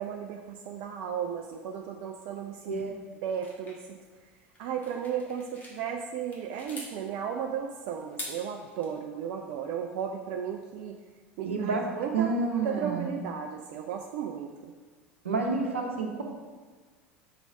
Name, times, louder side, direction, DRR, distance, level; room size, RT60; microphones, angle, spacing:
voice 1, 0.0-2.7 3.2-3.9 4.6-11.0 11.4-14.7, right 8 dB, 60° right, 3 dB, 0.5 m, -35 dB
voice 2, 2.6-3.0 11.4-11.9 12.1-13.1 15.2-16.2, right 4 dB, 85° right, 1 dB, 0.9 m, -29 dB
sound 1, 3.4-5.8 6.2-6.9 8.0-8.9, left 1 dB, 25° left, 1.9 m, -44 dB
5.8 x 4.0 x 5.6 m, 1.4 s
figure-of-eight pair, 75°, 7 cm